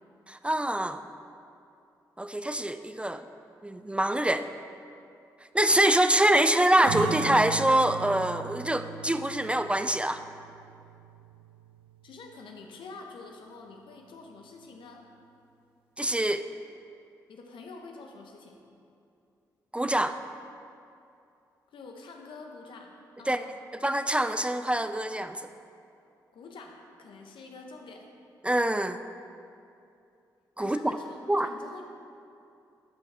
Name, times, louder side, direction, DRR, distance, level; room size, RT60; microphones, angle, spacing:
voice 1, 0.3-1.0 2.2-3.2 3.6-4.5 5.5-10.2 16.0-16.4 19.7-20.2 23.3-23.4 23.8-25.5 28.4-29.0 30.6-31.0 31.3-31.5, right 1 dB, 15° right, 10 dB, 0.4 m, -25 dB
sound 1, 6.9-12.1, right 6 dB, 85° right, 0.6 m, -38 dB
voice 2, 12.0-15.0 17.3-18.6 21.7-23.5 26.3-28.1 30.6-31.8, left 3 dB, 70° left, 2 dB, 0.9 m, -46 dB
12.0 x 5.4 x 3.4 m, 2.6 s
hypercardioid pair, 40°, 9 cm